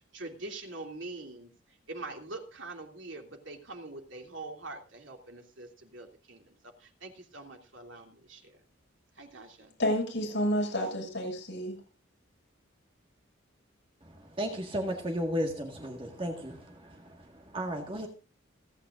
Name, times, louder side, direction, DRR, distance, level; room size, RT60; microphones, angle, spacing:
voice 1, 0.1-1.5 1.9-6.4 7.0-8.4 9.2-9.7, right 2 dB, 70° right, 2.9 m, -43 dB
voice 2, 9.8-11.8, equal, 60° left, 6.4 m, -30 dB
voice 3, 14.0-18.1, equal, 25° right, 1.8 m, -35 dB
28.0 x 9.4 x 2.6 m
head